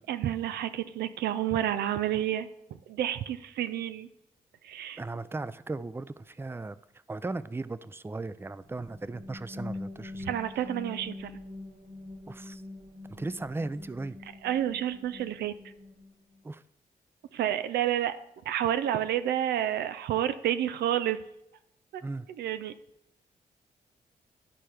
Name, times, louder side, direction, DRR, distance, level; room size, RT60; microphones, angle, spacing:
voice 1, 0.1-2.5 2.9-4.1 4.6-5.0 10.3-11.4 14.4-15.5 17.3-18.1 18.5-21.2 21.9-22.0 22.4-22.7, right 11 dB, 85° right, 11 dB, 0.4 m, -29 dB
voice 2, 5.0-6.8 7.1-10.3 12.3-12.6 13.1-14.2 16.4-16.6 22.0-22.3, right 3 dB, 15° right, 15 dB, 0.4 m, -37 dB
sound 1, 8.6-16.4, left 2 dB, 55° right, 2.3 m, -44 dB
12.5 x 4.4 x 4.9 m, 0.80 s
supercardioid pair, 40°, 16 cm